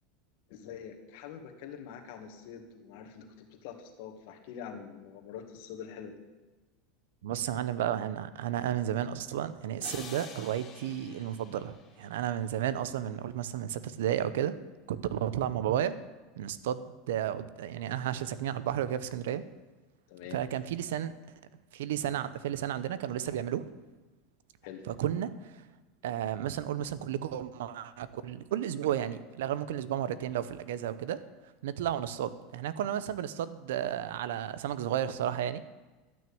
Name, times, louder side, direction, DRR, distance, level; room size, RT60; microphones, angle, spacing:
voice 1, 0.5-6.2 20.1-20.4 24.6-24.8, left 8 dB, 65° left, 3 dB, 2.1 m, -45 dB
voice 2, 7.2-14.6 14.9-15.9 16.4-19.4 20.3-21.1 21.7-23.6 24.9-25.6 26.0-31.2 31.6-35.6, right 10 dB, 90° right, 15 dB, 0.8 m, -33 dB
sound 1, 9.8-12.7, left 5 dB, 30° left, 2.6 m, -48 dB
12.0 x 6.4 x 8.7 m, 1.2 s
supercardioid pair, 135°, 0 cm